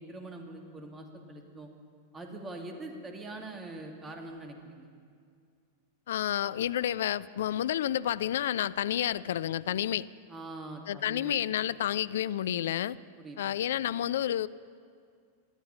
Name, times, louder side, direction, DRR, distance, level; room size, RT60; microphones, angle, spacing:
voice 1, 0.0-1.7 2.1-4.9 10.3-11.4 13.2-13.4, right 2 dB, 20° right, 3 dB, 2.2 m, -43 dB
voice 2, 6.1-10.1 10.9-13.0 13.4-14.5, left 11 dB, 60° left, 18 dB, 0.3 m, -30 dB
19.0 x 12.5 x 5.6 m, 2.2 s
figure-of-eight pair, 90°, 0 cm